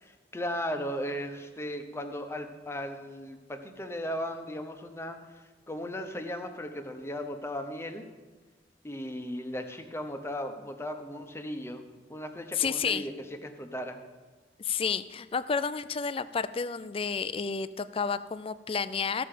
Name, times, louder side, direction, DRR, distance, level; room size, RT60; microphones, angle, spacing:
voice 1, 0.3-8.0 8.8-11.8 12.1-14.0, equal, 15° left, 6 dB, 0.9 m, -36 dB
voice 2, 12.6-13.1 14.6-19.2, left 6 dB, 30° left, 14 dB, 0.4 m, -31 dB
14.5 x 7.0 x 5.0 m, 1.3 s
head